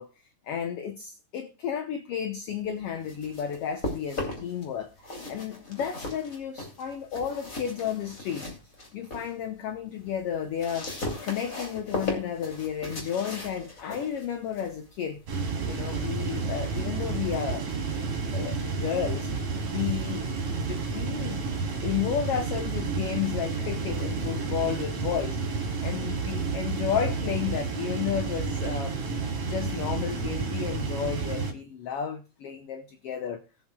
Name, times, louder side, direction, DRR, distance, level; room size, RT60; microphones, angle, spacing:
voice 1, 0.0-4.9 5.3-10.9 11.2-15.2 15.6-18.0 18.3-19.3 19.7-21.4 21.8-29.0 29.4-33.4, left 8 dB, 65° left, 1.7 m, -32 dB
sound 1, 2.8-4.6 5.0-9.3 9.7-16.3, left 2 dB, 25° left, 3.2 m, -38 dB
sound 2, 15.3-31.5, right 4 dB, 75° right, 3.8 m, -30 dB
20.0 x 7.9 x 2.3 m
omnidirectional pair, 3.4 m